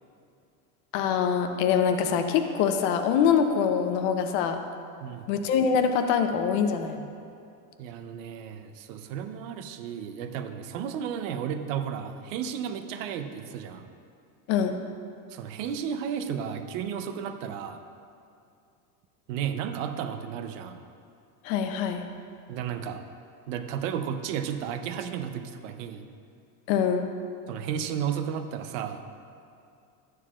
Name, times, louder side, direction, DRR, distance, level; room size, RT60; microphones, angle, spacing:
voice 1, 0.9-4.6 5.3-7.1 14.5-14.8 21.4-22.1 26.7-27.1, left 7 dB, 45° left, 6 dB, 0.8 m, -24 dB
voice 2, 7.8-13.9 15.3-17.8 19.3-20.8 22.5-23.0 23.5-26.1 27.5-29.1, right 8 dB, 55° right, 8 dB, 0.7 m, -33 dB
12.5 x 9.4 x 2.4 m, 2.5 s
supercardioid pair, 145°, 46 cm